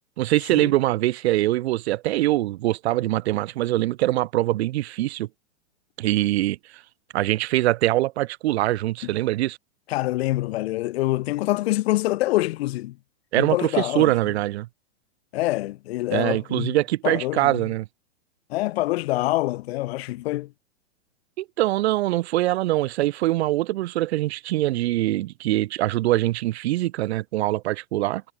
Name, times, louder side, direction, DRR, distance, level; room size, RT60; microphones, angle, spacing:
voice 1, 0.2-5.3 6.0-6.8 7.1-9.6 13.3-14.7 16.1-17.9 21.4-28.2, right 16 dB, 55° right, 1.5 m, -23 dB
voice 2, 9.9-13.0 13.3-14.1 15.3-16.8 17.0-17.6 18.5-20.5, left 17 dB, 50° left, 1.6 m, -25 dB
hypercardioid pair, 145°, 39 cm